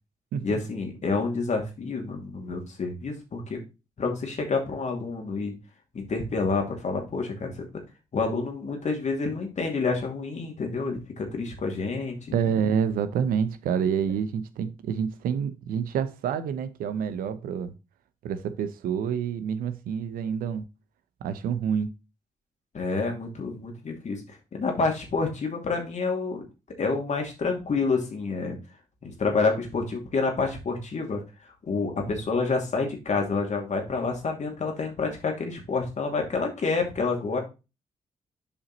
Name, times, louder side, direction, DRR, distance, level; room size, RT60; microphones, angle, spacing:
voice 1, 0.4-3.6 4.0-5.5 5.9-7.6 8.1-12.4 22.7-26.4 26.8-28.6 29.0-31.2 31.7-37.4, left 4 dB, 50° left, 2.6 m, -28 dB
voice 2, 12.3-17.7 18.2-20.7 21.2-21.9, right 7 dB, 70° right, 0.9 m, -28 dB
7.1 x 5.3 x 4.1 m
hypercardioid pair, 40°, 15 cm